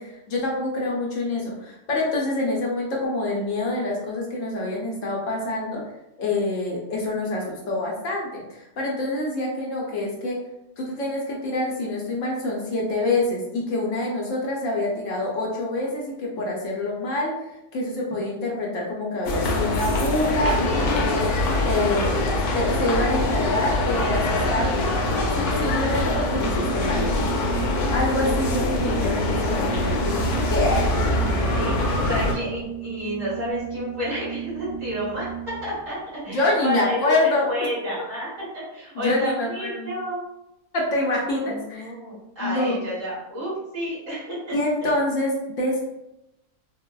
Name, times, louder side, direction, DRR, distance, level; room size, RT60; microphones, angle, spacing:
voice 1, 0.0-5.8 6.2-10.4 10.8-22.2 22.5-24.9 25.3-27.1 27.9-30.9 36.3-37.5 38.9-39.9 40.7-41.9 42.4-42.8 44.5-45.9, left 2 dB, 65° left, -3 dB, 1.0 m, -26 dB
voice 2, 6.9-7.6 31.2-35.3 35.6-38.3 38.5-40.2 41.4-44.6 44.8-44.9, equal, 55° right, -9 dB, 2.0 m, -31 dB
sound 1, 19.3-32.3, left 2 dB, 85° left, 1.1 m, -23 dB
Organ, 25.6-35.8, right 8 dB, 75° right, 1.3 m, -35 dB
3.9 x 2.1 x 2.2 m, 0.88 s
omnidirectional pair, 1.6 m